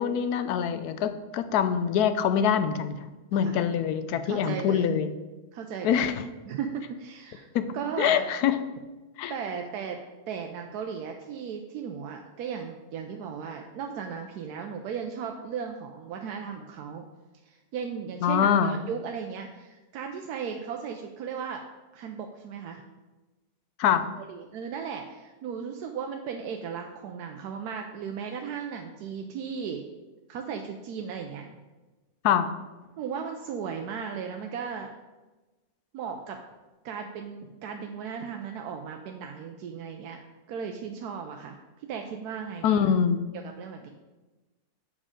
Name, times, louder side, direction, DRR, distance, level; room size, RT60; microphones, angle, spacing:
voice 1, 0.0-3.0 3.3-5.1 5.8-6.1 7.5-7.7 8.0-8.6 9.2-9.3 18.2-18.7 23.8-24.0 32.2-32.5 42.6-43.2, left 8 dB, 85° left, 11 dB, 1.1 m, -24 dB
voice 2, 3.4-3.8 4.2-4.9 5.5-6.1 6.5-7.5 7.7-8.3 9.3-10.0 10.3-17.1 17.4-21.6 21.9-22.8 24.2-29.8 30.3-31.5 33.0-34.9 35.9-36.4 36.8-40.2 40.5-42.9 43.3-43.9, right 6 dB, 90° right, 4 dB, 1.1 m, -36 dB
7.5 x 4.9 x 5.0 m, 1.2 s
omnidirectional pair, 1.6 m